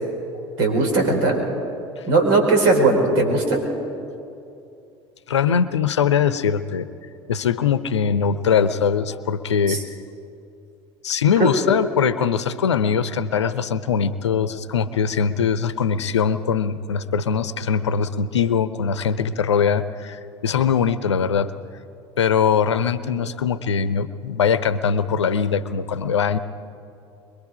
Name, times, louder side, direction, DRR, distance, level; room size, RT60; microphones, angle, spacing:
voice 1, 0.6-1.4 2.1-3.6 9.7-9.8 11.4-11.5, right 3 dB, 65° right, 3 dB, 4.9 m, -18 dB
voice 2, 5.3-6.9 7.3-9.8 11.0-21.5 22.2-26.4, left 7 dB, 80° left, 14 dB, 0.8 m, -21 dB
24.0 x 22.5 x 5.0 m, 2.6 s
figure-of-eight pair, 70°, 14 cm